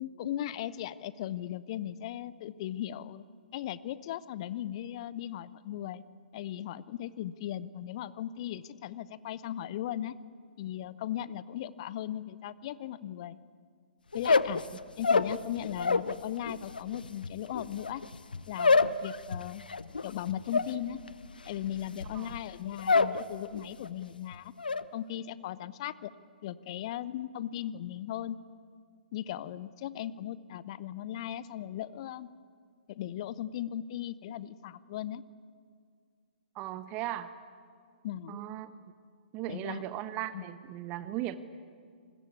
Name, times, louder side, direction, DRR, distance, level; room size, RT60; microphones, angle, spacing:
voice 1, 0.0-3.2 3.5-6.0 6.3-10.2 10.6-13.4 14.1-14.6 15.0-18.1 18.5-19.6 20.0-21.0 21.4-24.5 24.9-26.1 26.4-28.4 29.1-32.3 32.9-35.2 38.0-38.4 39.5-39.8 40.3-40.4, left 12 dB, 40° left, 18 dB, 0.9 m, -37 dB
sound 1, 14.1-16.2 16.5-23.2 23.5-24.0 24.3-24.8, left 4 dB, 70° left, 0.9 m, -28 dB
voice 2, 36.5-37.3 38.3-38.7 39.3-41.4, right 14 dB, 25° right, 12 dB, 1.0 m, -37 dB
29.0 x 21.0 x 8.5 m, 2.2 s
figure-of-eight pair, 120°, 5 cm